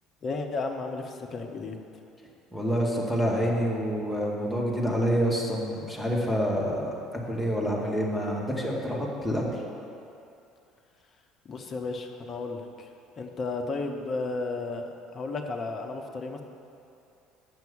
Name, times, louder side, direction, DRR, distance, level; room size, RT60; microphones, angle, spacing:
voice 1, 0.2-1.8 11.4-12.9 13.2-14.8 15.1-16.4, left 3 dB, 40° left, 3 dB, 0.9 m, -33 dB
voice 2, 2.5-6.9 7.3-9.6, equal, 5° left, -4 dB, 2.0 m, -27 dB
7.9 x 6.0 x 7.2 m, 2.7 s
figure-of-eight pair, 60°, 0 cm